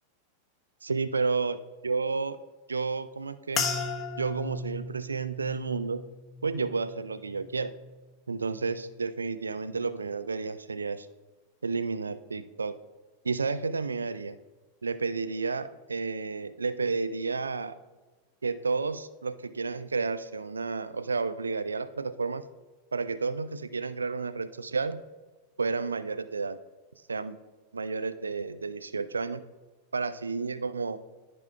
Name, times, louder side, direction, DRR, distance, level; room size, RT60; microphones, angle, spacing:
voice 1, 0.8-1.6 1.8-2.4 2.7-3.6 4.2-6.0 6.4-7.7 8.3-11.1 11.6-12.8 13.2-14.4 14.8-17.8 18.4-22.4 22.9-25.0 25.6-26.6 27.1-27.4 27.7-29.4 29.9-31.0, right 4 dB, 75° right, 13 dB, 0.3 m, -31 dB
sound 1, 3.5-8.1 8.4-9.0 9.6-9.9, left 4 dB, 25° left, 0.9 m, -37 dB
13.5 x 5.0 x 2.3 m, 1.2 s
figure-of-eight pair, 90°, 0 cm